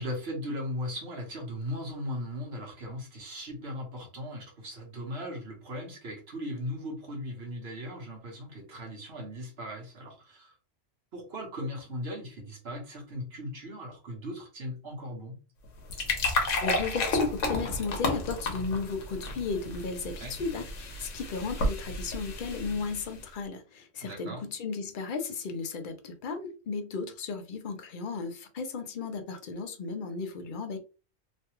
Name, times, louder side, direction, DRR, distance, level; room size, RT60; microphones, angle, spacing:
voice 1, 0.0-10.5 11.1-15.4 20.2-20.3 24.0-24.4, equal, 60° right, 1.3 m, -38 dB
sound 1, 15.6-23.2, left 2 dB, 75° left, 1.2 m, -32 dB
voice 2, 16.6-30.8, left 4 dB, 55° left, 0.6 m, -34 dB
3.1 x 2.3 x 3.0 m
omnidirectional pair, 1.3 m